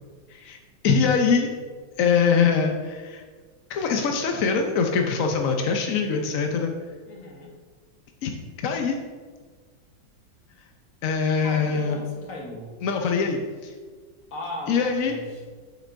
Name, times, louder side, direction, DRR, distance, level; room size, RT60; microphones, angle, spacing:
voice 1, 0.8-1.5 2.0-3.2 3.7-6.7 8.2-8.3 8.6-9.0 11.0-12.0 12.8-13.7 14.7-15.1, left 5 dB, 70° left, 3 dB, 0.8 m, -23 dB
voice 2, 7.1-7.6 11.4-12.8 14.3-15.4, left 1 dB, 50° left, -1 dB, 1.5 m, -37 dB
8.4 x 7.3 x 2.6 m, 1.5 s
omnidirectional pair, 2.1 m